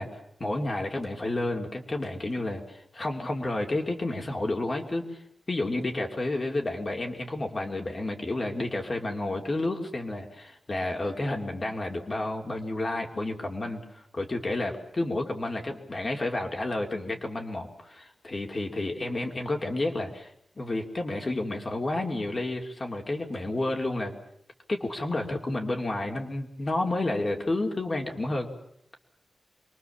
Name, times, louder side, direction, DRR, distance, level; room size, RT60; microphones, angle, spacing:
voice 1, 0.0-5.2 5.5-20.3 20.6-24.1 24.7-28.5, left 2 dB, 35° left, 2 dB, 3.0 m, -31 dB
26.5 x 22.5 x 7.3 m, 0.71 s
wide cardioid pair, 145°, 0 cm